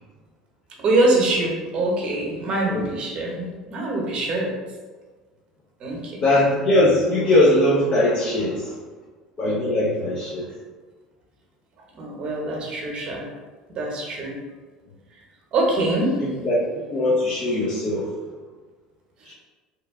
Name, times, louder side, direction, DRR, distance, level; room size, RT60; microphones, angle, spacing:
voice 1, 0.8-3.5 3.7-4.5 5.8-6.1 12.0-13.2 13.7-14.3 15.5-16.2, right 2 dB, 45° right, -1 dB, 0.9 m, -23 dB
voice 2, 6.2-8.8 9.4-10.5 16.2-18.1 19.2-19.3, left 1 dB, 40° left, -6 dB, 0.8 m, -20 dB
3.1 x 2.2 x 3.5 m, 1.4 s
hypercardioid pair, 75°, 2 cm